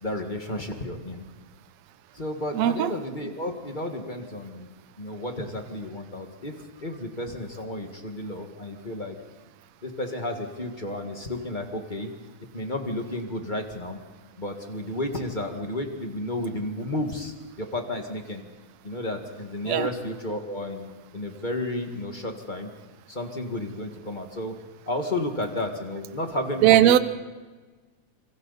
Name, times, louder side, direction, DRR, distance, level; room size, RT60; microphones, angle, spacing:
voice 1, 0.0-1.2 2.1-4.7 5.0-6.5 6.8-9.2 9.8-12.1 12.5-14.0 14.4-17.3 17.6-18.4 18.8-22.7 23.1-24.5 24.9-27.0, left 1 dB, 25° left, 3 dB, 1.2 m, -32 dB
voice 2, 2.5-2.9 19.7-19.9 26.6-27.0, right 12 dB, 70° right, 12 dB, 1.9 m, -18 dB
26.5 x 24.0 x 4.1 m, 1.3 s
omnidirectional pair, 3.5 m